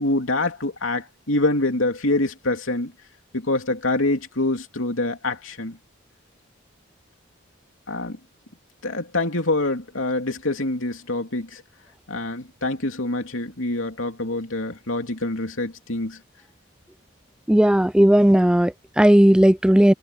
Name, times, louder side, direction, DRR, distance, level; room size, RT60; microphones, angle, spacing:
voice 1, 0.0-2.9 3.3-5.8 7.9-8.2 8.8-11.6 12.1-16.2, left 2 dB, 80° left, 3.0 m, -25 dB
voice 2, 17.5-19.9, equal, 5° right, 0.3 m, -16 dB
head